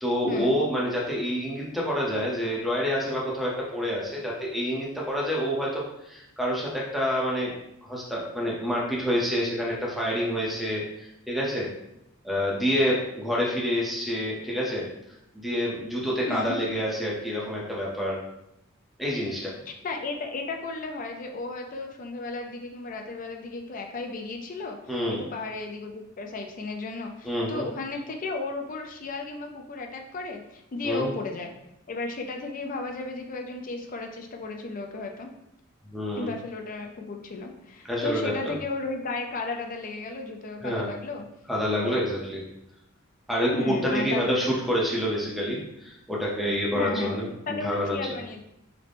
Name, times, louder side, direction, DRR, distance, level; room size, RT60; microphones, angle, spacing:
voice 1, 0.0-7.5 7.8-11.7 12.2-14.9 15.3-18.2 19.0-19.5 24.9-25.2 27.2-27.7 30.8-31.1 35.9-36.3 37.9-38.5 40.6-40.9 41.5-42.4 43.3-48.0, equal, ahead, -5 dB, 0.7 m, -27 dB
voice 2, 19.7-31.5 31.9-35.3 36.1-41.2 41.8-42.0 43.5-44.5 46.7-47.1 47.5-48.4, left 3 dB, 40° left, 3 dB, 0.4 m, -34 dB
3.9 x 2.1 x 3.3 m, 0.83 s
head